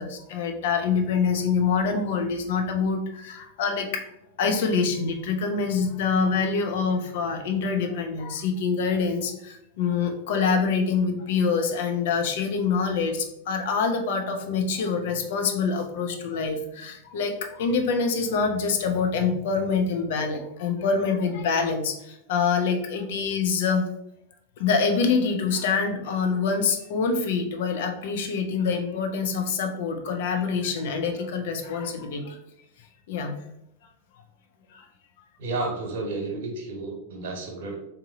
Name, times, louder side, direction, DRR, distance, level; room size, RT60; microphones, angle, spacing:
voice 1, 0.0-4.0 4.4-23.8 24.6-32.4 33.1-33.4 34.7-34.9, left 5 dB, 55° left, 4 dB, 0.7 m, -25 dB
voice 2, 35.4-37.8, right 3 dB, 55° right, 2 dB, 1.1 m, -31 dB
3.7 x 2.8 x 3.7 m, 0.79 s
figure-of-eight pair, 90°, 0 cm